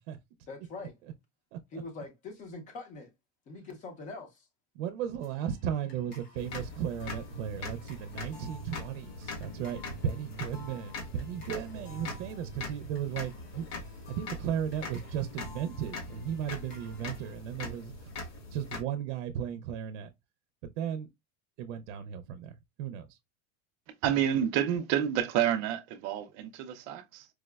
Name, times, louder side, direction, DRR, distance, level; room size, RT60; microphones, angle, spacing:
voice 1, 0.5-1.0 1.7-3.1 3.5-4.5, left 3 dB, 20° left, 0.6 m, -43 dB
voice 2, 4.8-13.7 14.1-18.1 18.5-20.1 20.6-21.1 21.6-23.2, right 9 dB, 85° right, 0.5 m, -35 dB
sound 1, 5.2-17.4, left 3 dB, 60° left, 1.7 m, -54 dB
sound 2, 6.4-18.8, left 2 dB, 90° left, 1.6 m, -42 dB
voice 3, 23.9-27.3, right 10 dB, 35° right, 0.4 m, -29 dB
4.6 x 2.0 x 2.2 m
cardioid pair, 180°, 35 cm